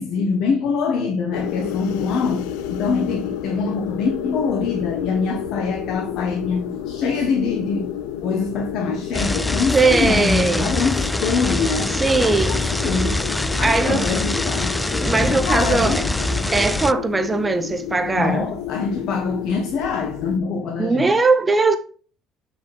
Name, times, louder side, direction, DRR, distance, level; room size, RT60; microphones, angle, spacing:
voice 1, 0.0-12.0 12.2-13.3 13.6-14.8 15.2-16.1 18.2-21.2, left 5 dB, 65° left, 1.1 m, -24 dB
sound 1, 1.3-20.4, left 10 dB, 90° left, 0.6 m, -31 dB
sound 2, 9.1-16.9, left 1 dB, 10° left, 0.3 m, -24 dB
voice 2, 9.7-10.7 11.9-12.6 13.6-14.1 15.0-16.0 16.5-18.5 20.8-21.8, right 3 dB, 15° right, 0.7 m, -19 dB
8.0 x 5.2 x 3.2 m
cardioid pair, 115°, 0 cm